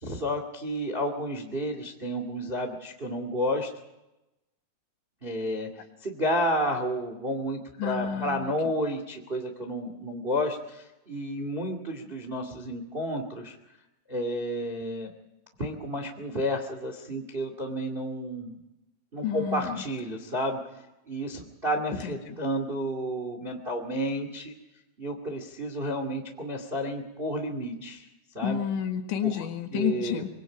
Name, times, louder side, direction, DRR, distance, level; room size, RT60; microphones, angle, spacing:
voice 1, 0.0-3.7 5.2-13.5 14.1-15.1 15.6-18.6 19.1-20.6 21.1-24.5 25.0-28.1 28.3-28.6 29.7-30.2, equal, 30° right, 5 dB, 1.0 m, -31 dB
voice 2, 7.8-8.5 19.2-19.8 22.0-22.4 28.4-30.3, left 9 dB, 85° left, 5 dB, 4.2 m, -30 dB
25.5 x 22.5 x 5.1 m, 0.96 s
omnidirectional pair, 5.1 m